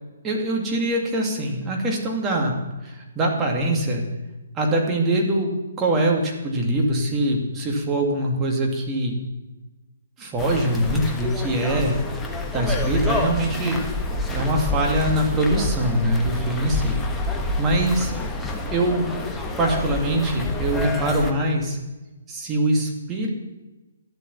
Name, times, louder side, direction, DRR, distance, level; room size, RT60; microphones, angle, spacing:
voice 1, 0.2-2.6 2.8-4.0 4.5-5.5 5.8-9.1 10.2-12.0 12.5-13.8 14.3-17.0 17.6-18.1 18.7-19.1 19.6-21.8 22.3-23.3, right 1 dB, 15° right, -1 dB, 2.3 m, -23 dB
sound 1, 10.4-21.3, left 2 dB, 10° left, 1.1 m, -28 dB
12.0 x 7.7 x 7.0 m, 1.1 s
figure-of-eight pair, 130°, 0 cm